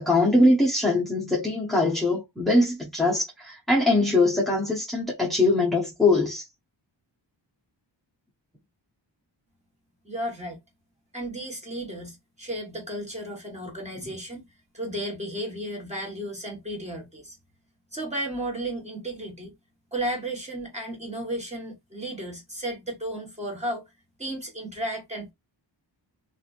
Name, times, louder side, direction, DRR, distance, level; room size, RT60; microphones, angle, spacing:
voice 1, 0.0-6.5, left 2 dB, ahead, 0.7 m, -22 dB
voice 2, 10.0-10.6 11.1-14.5 14.7-17.4 17.9-19.5 19.9-23.8 24.2-25.3, right 1 dB, 15° right, 1.3 m, -33 dB
3.0 x 2.5 x 2.4 m
wide cardioid pair, 135°, 44 cm